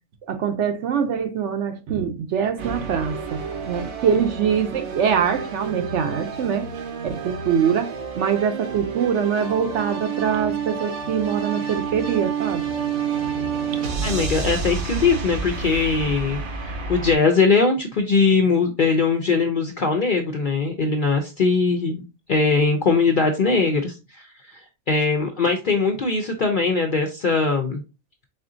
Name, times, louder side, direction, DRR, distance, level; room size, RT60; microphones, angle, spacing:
voice 1, 0.3-6.7 7.0-12.7, right 7 dB, 65° right, 0.8 m, -24 dB
sound 1, 2.6-17.2, right 6 dB, 90° right, 1.4 m, -29 dB
voice 2, 14.0-22.0 22.3-24.6 24.9-27.8, left 4 dB, 55° left, 0.5 m, -21 dB
4.2 x 3.8 x 2.6 m
omnidirectional pair, 1.4 m